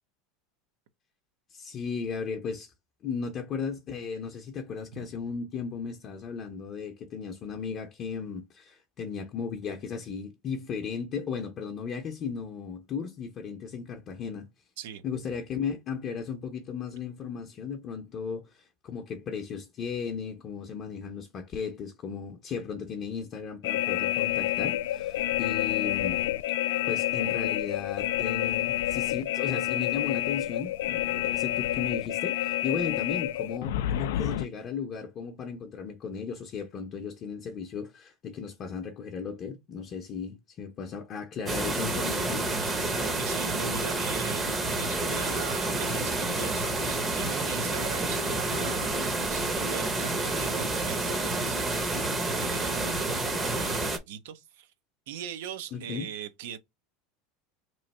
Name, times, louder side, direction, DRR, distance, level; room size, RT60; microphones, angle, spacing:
voice 1, 1.5-2.7 3.0-14.5 15.0-26.3 26.9-42.5 55.7-56.1, left 6 dB, 40° left, 0.6 m, -35 dB
sound 1, 23.6-34.5, left 13 dB, 85° left, 0.3 m, -29 dB
sound 2, 41.5-54.0, right 2 dB, 20° right, 0.7 m, -29 dB
voice 2, 42.9-44.4 44.7-52.0 52.3-54.7 55.1-56.6, right 8 dB, 80° right, 0.6 m, -40 dB
3.1 x 2.5 x 4.1 m
supercardioid pair, 135°, 0 cm